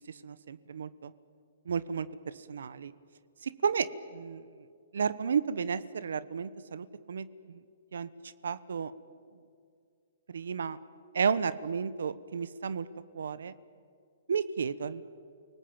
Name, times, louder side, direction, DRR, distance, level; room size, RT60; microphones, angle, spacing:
voice 1, 0.1-1.1 1.7-2.9 3.4-4.5 4.9-7.6 7.9-8.9 10.3-10.8 11.1-12.9 13.1-13.5 14.3-15.0, right 6 dB, 85° right, 16 dB, 1.1 m, -33 dB
29.5 x 19.0 x 8.8 m, 2.3 s
hypercardioid pair, 165°, 0 cm